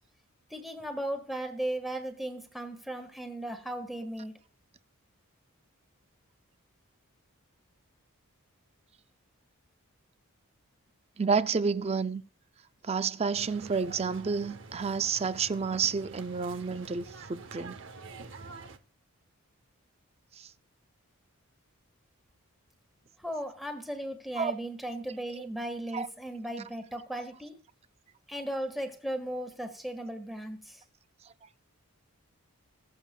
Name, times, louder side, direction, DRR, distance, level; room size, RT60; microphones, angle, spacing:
voice 1, 0.5-4.4 23.2-27.6 28.3-30.8, right 1 dB, ahead, 1.5 m, -36 dB
voice 2, 11.2-12.2 12.8-17.8 20.4-20.5 24.4-24.5 25.3-25.5 25.9-26.1, right 5 dB, 30° right, 0.4 m, -30 dB
sound 1, 13.3-18.8, right 4 dB, 55° right, 0.8 m, -47 dB
21.5 x 7.3 x 2.3 m
head